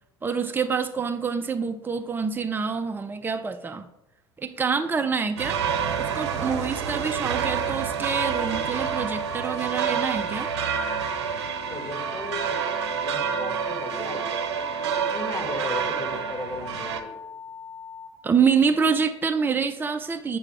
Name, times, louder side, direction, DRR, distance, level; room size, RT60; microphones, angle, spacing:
voice 1, 0.2-3.9 4.4-5.6 6.0-10.5 18.2-20.4, right 6 dB, 15° right, 8 dB, 0.5 m, -26 dB
sound 1, 5.4-17.0, right 7 dB, 70° right, 0.7 m, -28 dB
sound 2, 8.1-18.1, left 6 dB, 50° left, 2.5 m, -41 dB
voice 2, 11.7-12.6 12.9-17.2, left 2 dB, 25° left, 3 dB, 1.7 m, -36 dB
6.9 x 5.9 x 3.3 m, 0.94 s
figure-of-eight pair, 65°, 14 cm